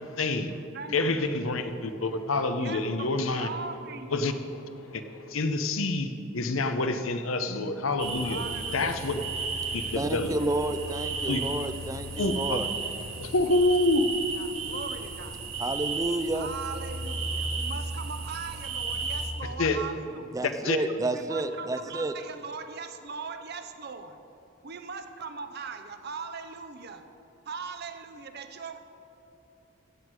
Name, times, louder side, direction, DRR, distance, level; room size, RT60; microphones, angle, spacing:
voice 1, 0.2-0.6 0.9-3.5 4.1-4.4 4.8-8.4 8.7-9.2 9.5-10.3 11.3-11.6 12.2-12.6 13.1-14.1 19.6-19.8 20.4-20.8, left 2 dB, 85° left, 8 dB, 0.8 m, -27 dB
voice 2, 0.7-1.4 2.6-4.4 8.2-9.1 14.4-15.5 16.3-20.5 21.1-24.2 24.6-27.1 27.5-28.8, right 5 dB, 55° right, 9 dB, 0.7 m, -40 dB
sound 1, 8.0-19.3, right 3 dB, 70° right, 1.5 m, -34 dB
voice 3, 9.9-12.7 15.6-16.5 20.3-22.1, right 2 dB, 15° right, 10 dB, 0.4 m, -30 dB
15.0 x 8.1 x 4.8 m, 2.9 s
head